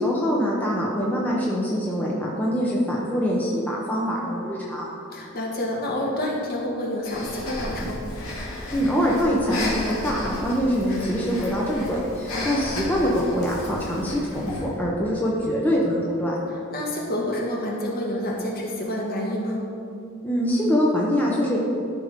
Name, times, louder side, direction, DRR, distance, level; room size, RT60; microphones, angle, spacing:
voice 1, 0.0-4.9 8.7-16.4 20.2-21.6, equal, 10° left, -4 dB, 0.8 m, -24 dB
voice 2, 5.1-8.1 12.3-12.7 16.7-19.7, left 1 dB, 45° left, -2 dB, 1.5 m, -28 dB
Breathing, 7.0-14.7, left 1 dB, 70° left, 2.0 m, -34 dB
12.5 x 5.2 x 3.6 m, 2.6 s
head